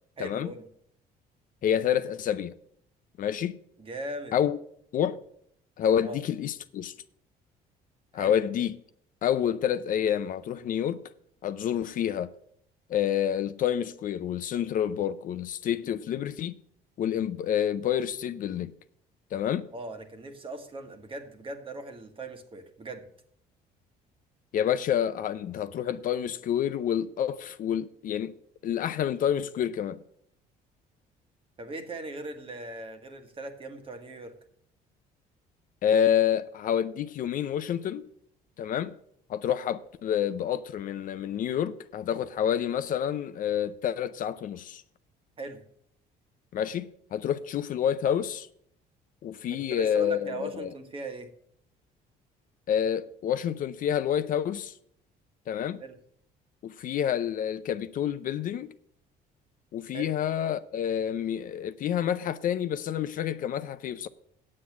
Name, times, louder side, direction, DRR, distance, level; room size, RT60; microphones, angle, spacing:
voice 1, 0.2-0.6 3.8-4.3 6.0-6.2 8.1-8.3 19.7-23.1 31.6-34.4 45.4-45.6 49.5-51.3 55.8-56.0 59.9-60.1, right 2 dB, 30° right, 1.4 m, -39 dB
voice 2, 1.6-2.5 3.2-3.6 4.3-4.6 4.9-5.2 5.8-6.9 8.1-8.8 9.2-11.0 11.4-12.3 12.9-16.6 17.0-18.7 19.3-19.7 24.5-28.3 28.6-30.0 35.8-38.1 38.6-38.9 39.3-44.8 46.5-48.5 49.2-50.7 52.7-54.7 55.5-55.8 56.6-58.7 59.7-64.1, left 9 dB, 55° left, 0.5 m, -28 dB
8.6 x 7.8 x 6.1 m
cardioid pair, 110°, 17 cm